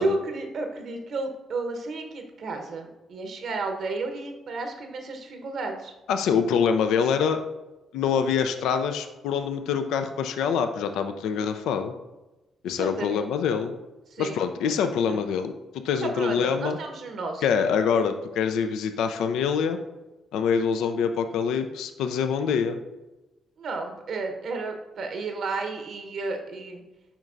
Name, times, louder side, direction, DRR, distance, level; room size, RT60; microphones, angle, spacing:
voice 1, 0.0-5.9 12.7-13.3 14.1-14.8 15.1-15.2 16.0-17.4 23.6-26.8, right 3 dB, 65° right, 4 dB, 0.9 m, -32 dB
voice 2, 6.1-7.4 7.9-11.9 12.6-13.7 14.2-15.5 15.8-16.8 17.4-19.8 20.3-22.8, left 7 dB, 75° left, 8 dB, 0.4 m, -25 dB
7.3 x 5.3 x 2.5 m, 1.1 s
hypercardioid pair, 45°, 0 cm